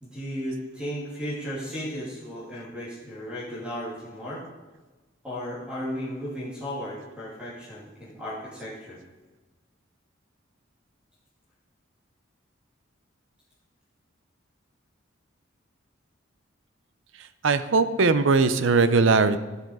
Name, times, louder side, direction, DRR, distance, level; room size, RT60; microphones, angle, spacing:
voice 1, 0.0-4.4 5.2-9.0, equal, 5° right, -8 dB, 2.7 m, -35 dB
voice 2, 17.2-19.4, right 4 dB, 75° right, 12 dB, 0.6 m, -20 dB
12.5 x 7.9 x 4.8 m, 1.2 s
head